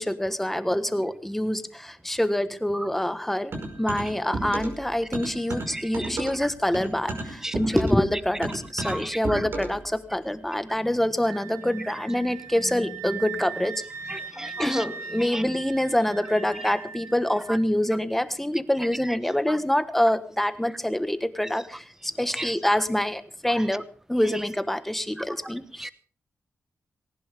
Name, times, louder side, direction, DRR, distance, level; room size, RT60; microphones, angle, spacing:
voice 1, 0.0-3.5 3.8-13.8 14.1-14.2 14.6-23.8 24.1-25.9, left 1 dB, 5° left, 1.3 m, -26 dB
sound 1, 3.5-4.8 5.1-9.9, right 2 dB, 55° right, 5.4 m, -33 dB
voice 2, 5.7-6.1 6.4-6.5 7.4-7.5 8.8-9.5 14.1-14.8 15.2-15.4 17.5-17.6 19.5-19.6 22.4-22.5 23.5-23.6 25.2-25.3 25.8-25.9, right 1 dB, 10° right, 0.9 m, -35 dB
Wind instrument woodwind instrument, 11.2-17.6, right 6 dB, 75° right, 3.6 m, -40 dB
19.5 x 18.0 x 3.5 m
wide cardioid pair, 125°, 5 cm